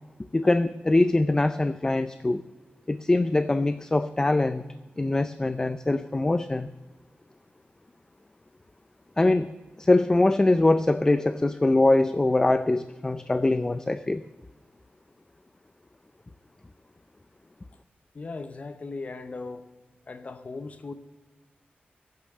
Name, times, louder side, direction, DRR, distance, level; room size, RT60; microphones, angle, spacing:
voice 1, 0.3-2.4 2.9-4.6 5.0-6.7 9.2-14.2, left 2 dB, 15° left, 12 dB, 0.4 m, -23 dB
voice 2, 18.1-19.7 20.1-20.9, left 3 dB, 40° left, 10 dB, 0.8 m, -38 dB
15.5 x 9.3 x 6.6 m, 1.2 s
wide cardioid pair, 155°, 4 cm